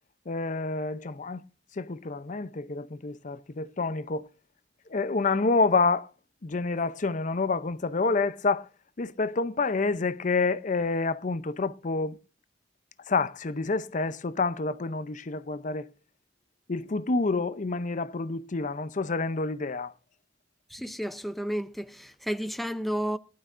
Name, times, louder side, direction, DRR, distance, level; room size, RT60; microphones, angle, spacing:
voice 1, 0.3-1.4 1.8-4.3 4.9-6.1 6.4-8.6 9.0-12.2 13.1-15.9 16.7-19.9, left 3 dB, 45° left, 0.6 m, -28 dB
voice 2, 20.7-23.2, equal, ahead, 0.6 m, -32 dB
19.0 x 11.5 x 2.5 m
head